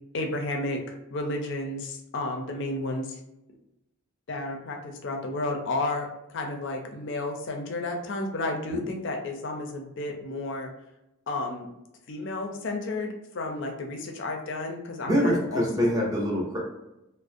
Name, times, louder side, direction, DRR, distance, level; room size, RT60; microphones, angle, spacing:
voice 1, 0.1-3.2 4.3-10.7 11.3-11.7 12.1-16.0, left 2 dB, 55° left, 2 dB, 0.4 m, -32 dB
voice 2, 15.1-16.6, equal, 15° right, -3 dB, 0.6 m, -25 dB
2.4 x 2.0 x 2.5 m, 0.90 s
head